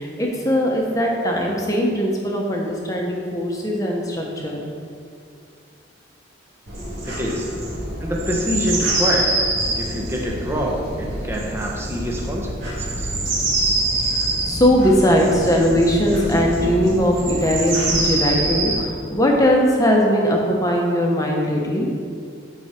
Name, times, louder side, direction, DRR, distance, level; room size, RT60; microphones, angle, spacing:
voice 1, 0.0-4.6 7.3-7.4 14.0-21.9, equal, 15° left, -1 dB, 1.2 m, -20 dB
sound 1, 6.7-18.8, right 2 dB, 85° right, 1.9 m, -25 dB
voice 2, 7.1-7.5 8.0-9.4 9.8-13.1, equal, 15° right, -1 dB, 1.1 m, -26 dB
13.0 x 4.7 x 4.5 m, 2.3 s
head